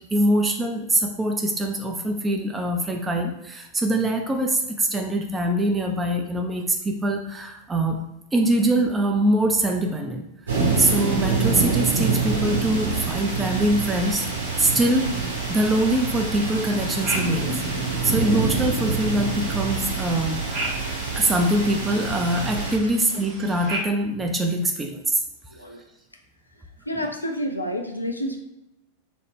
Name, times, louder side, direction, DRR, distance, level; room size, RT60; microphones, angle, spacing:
voice 1, 0.1-8.0 8.3-10.2 10.5-14.3 14.6-15.1 15.5-17.5 18.0-20.4 21.1-25.2, right 1 dB, 15° right, 3 dB, 0.3 m, -23 dB
sound 1, 10.5-22.8, right 4 dB, 70° right, 0.7 m, -26 dB
sound 2, 13.8-23.8, right 2 dB, 35° right, 0.8 m, -38 dB
voice 2, 25.5-25.8 26.9-28.4, equal, 85° left, 3 dB, 0.3 m, -29 dB
3.0 x 2.1 x 3.2 m, 0.88 s
figure-of-eight pair, 90°, 0 cm